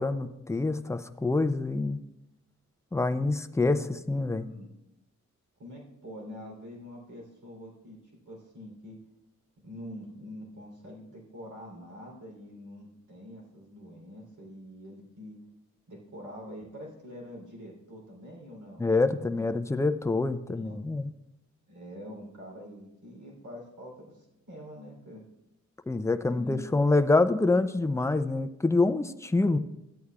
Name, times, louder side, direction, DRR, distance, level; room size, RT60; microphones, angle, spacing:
voice 1, 0.0-2.0 2.9-4.4 18.8-21.1 25.9-29.6, left 3 dB, 10° left, 9 dB, 0.4 m, -26 dB
voice 2, 4.3-4.7 5.6-8.0 8.3-9.0 9.6-15.4 15.9-19.5 20.5-20.8 21.7-25.2 26.3-26.8, equal, 80° right, -2 dB, 3.5 m, -45 dB
14.0 x 8.4 x 2.4 m, 0.89 s
wide cardioid pair, 115°, 30 cm